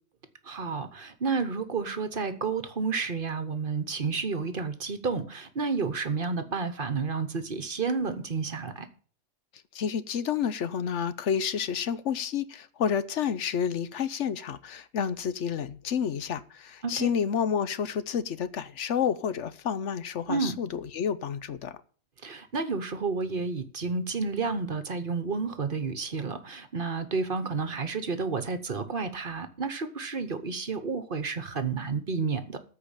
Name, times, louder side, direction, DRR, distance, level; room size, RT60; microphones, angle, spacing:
voice 1, 0.4-8.9 16.8-17.1 20.3-20.6 22.2-32.6, right 4 dB, 45° right, 1.1 m, -31 dB
voice 2, 9.7-21.7, left 7 dB, 70° left, 1.1 m, -30 dB
14.0 x 4.9 x 8.9 m
omnidirectional pair, 1.3 m